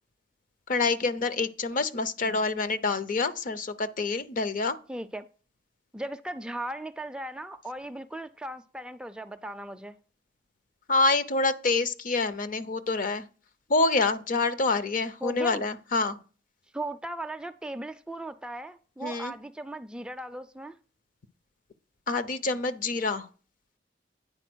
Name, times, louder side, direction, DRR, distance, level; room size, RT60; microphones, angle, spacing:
voice 1, 0.7-4.8 10.9-13.2 13.7-16.2 19.0-19.3 22.1-23.3, left 3 dB, 50° left, 0.6 m, -27 dB
voice 2, 4.9-5.3 5.9-10.0 15.2-15.6 16.7-20.8, right 1 dB, 5° right, 0.3 m, -37 dB
9.0 x 4.1 x 6.1 m
head